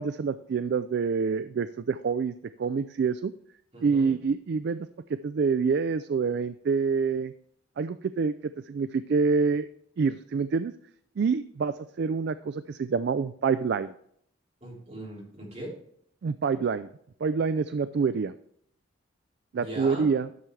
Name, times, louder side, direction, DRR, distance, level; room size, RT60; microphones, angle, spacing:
voice 1, 0.0-3.3 3.8-4.9 5.2-7.3 7.8-9.7 10.0-10.7 11.2-13.9 16.2-16.9 17.2-18.3 19.5-20.3, right 5 dB, 50° right, 13 dB, 0.3 m, -27 dB
voice 2, 3.7-4.1 14.6-15.7 19.6-20.2, right 1 dB, 30° right, -5 dB, 3.6 m, -39 dB
12.5 x 6.9 x 3.2 m, 0.68 s
head